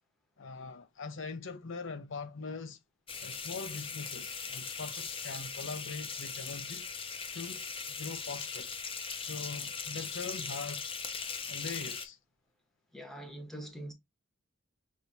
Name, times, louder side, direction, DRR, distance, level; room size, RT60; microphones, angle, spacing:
voice 1, 0.4-2.8 3.2-6.9 7.3-8.7 9.1-10.9 11.1-12.2, left 4 dB, 65° left, 0.7 m, -42 dB
sound 1, 3.1-12.1, left 5 dB, 25° left, 0.7 m, -39 dB
voice 2, 12.9-13.9, right 1 dB, ahead, 1.2 m, -43 dB
6.1 x 2.8 x 2.7 m
head